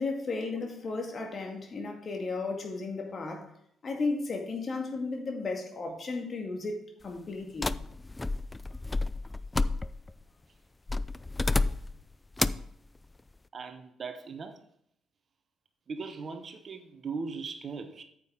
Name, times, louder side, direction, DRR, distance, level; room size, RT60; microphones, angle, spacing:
voice 1, 0.0-3.5 3.8-7.7, left 3 dB, 45° left, 2.1 m, -34 dB
sound 1, 7.6-10.2 10.9-12.0 12.4-12.7, left 2 dB, 20° left, 0.4 m, -30 dB
voice 2, 13.5-14.6 15.9-18.0, right 4 dB, 45° right, 1.0 m, -39 dB
9.4 x 7.6 x 3.6 m
hypercardioid pair, 45°, 0 cm